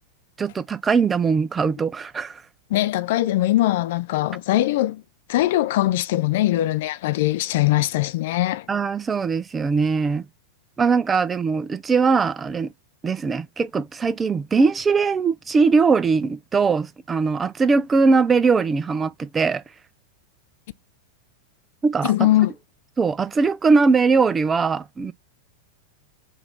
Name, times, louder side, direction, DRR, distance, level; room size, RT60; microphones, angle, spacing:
voice 1, 0.4-2.4 8.7-10.3 10.8-12.7 13.0-19.6 21.8-22.3 23.0-25.1, right 4 dB, 20° right, 0.4 m, -20 dB
voice 2, 2.7-5.0 5.3-8.7 22.0-22.5, left 15 dB, 55° left, 0.4 m, -21 dB
3.9 x 2.5 x 4.3 m
figure-of-eight pair, 95°, 0 cm